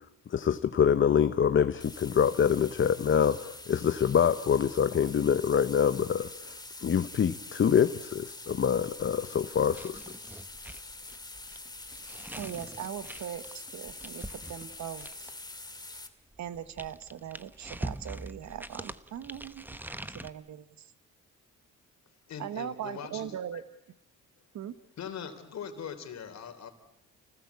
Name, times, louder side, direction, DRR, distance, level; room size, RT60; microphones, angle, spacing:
voice 1, 0.3-6.5 6.8-10.0, left 8 dB, 40° left, 11 dB, 0.9 m, -25 dB
sound 1, 1.8-16.1, left 2 dB, 15° left, 2.4 m, -45 dB
sound 2, 9.7-15.5 16.3-20.3, right 1 dB, 5° right, 1.0 m, -43 dB
voice 2, 12.4-15.3 16.4-19.8 20.2-20.6 22.4-23.6 24.5-24.7, right 10 dB, 65° right, 13 dB, 1.4 m, -40 dB
voice 3, 22.3-23.6 25.0-26.7, left 7 dB, 60° left, 8 dB, 3.5 m, -41 dB
30.0 x 19.0 x 8.3 m, 0.87 s
cardioid pair, 90°, 30 cm